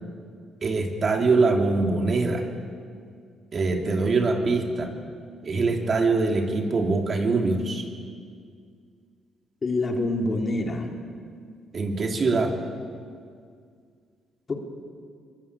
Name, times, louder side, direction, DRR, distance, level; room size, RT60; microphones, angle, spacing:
voice 1, 0.6-2.5 3.5-4.9 5.4-7.9 11.7-12.5, right 3 dB, 45° right, 2 dB, 3.1 m, -23 dB
voice 2, 9.6-10.9 14.5-14.6, left 2 dB, 35° left, 1 dB, 3.6 m, -26 dB
23.5 x 19.5 x 8.6 m, 2.1 s
cardioid pair, 90°, 0 cm